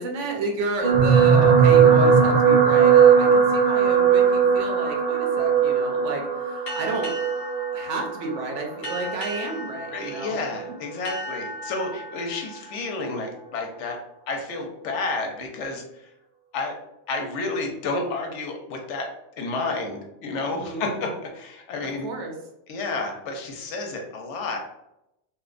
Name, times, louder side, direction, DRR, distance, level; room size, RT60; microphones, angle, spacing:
voice 1, 0.0-7.1 7.7-10.4 20.5-20.9 22.0-22.3, right 3 dB, 85° right, 2 dB, 0.9 m, -31 dB
sound 1, 0.8-9.3 10.0-10.3 10.6-10.7, right 6 dB, 55° right, 0.5 m, -18 dB
sound 2, 6.7-13.9, left 1 dB, 60° left, 0.9 m, -37 dB
voice 2, 9.9-14.0 14.3-16.0 16.5-16.8 17.1-22.1 22.7-24.6, left 3 dB, 85° left, 2 dB, 0.9 m, -30 dB
2.7 x 2.1 x 2.4 m, 0.85 s
omnidirectional pair, 1.2 m